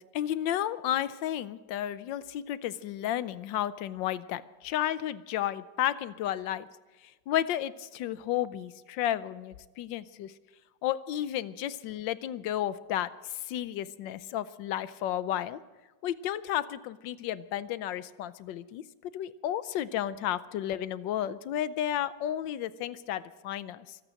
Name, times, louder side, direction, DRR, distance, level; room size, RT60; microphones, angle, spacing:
voice 1, 0.0-6.7 7.3-10.3 10.8-15.6 16.0-24.0, left 11 dB, 75° left, 15 dB, 1.4 m, -32 dB
24.5 x 9.1 x 6.4 m, 1.2 s
omnidirectional pair, 2.1 m